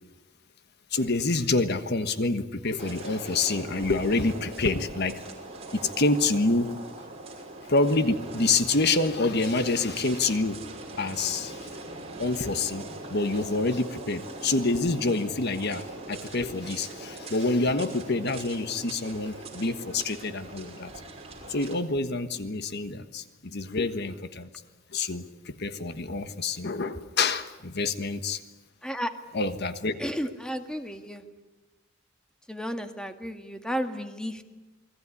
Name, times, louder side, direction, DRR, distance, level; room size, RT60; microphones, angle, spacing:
voice 1, 0.9-5.2 5.7-6.7 7.7-10.6 11.0-11.6 12.2-12.8 13.1-20.9 21.5-24.5 24.9-28.4 29.3-29.9, left 3 dB, 55° left, 10 dB, 1.4 m, -27 dB
sound 1, 2.8-21.7, right 2 dB, 30° right, 5.8 m, -41 dB
voice 2, 28.8-29.1 30.0-31.2 32.5-34.4, equal, 5° left, 6 dB, 1.8 m, -33 dB
29.0 x 21.0 x 9.9 m, 1.1 s
head